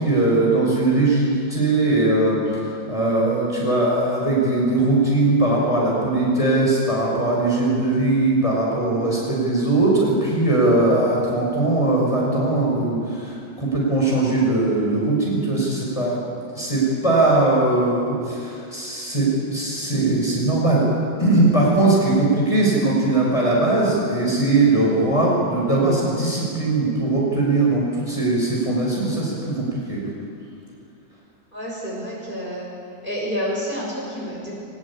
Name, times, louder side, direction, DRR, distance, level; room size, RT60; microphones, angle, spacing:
voice 1, 0.0-16.2 16.5-20.9 21.2-30.0, right 2 dB, 15° left, -4 dB, 5.9 m, -20 dB
voice 2, 31.5-32.7 33.0-34.5, equal, 25° right, -4 dB, 6.4 m, -29 dB
22.0 x 20.5 x 8.7 m, 2.5 s
omnidirectional pair, 2.0 m